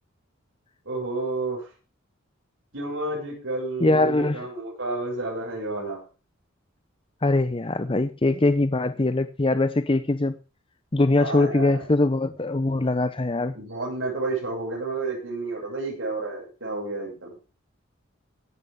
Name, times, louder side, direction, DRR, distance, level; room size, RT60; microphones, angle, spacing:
voice 1, 0.8-1.6 2.7-6.0 11.2-11.8 13.5-17.3, right 3 dB, 80° right, -3 dB, 6.7 m, -30 dB
voice 2, 3.8-4.5 7.2-10.4 10.9-13.5, left 2 dB, 25° left, 11 dB, 0.6 m, -22 dB
16.5 x 11.0 x 3.7 m, 0.34 s
head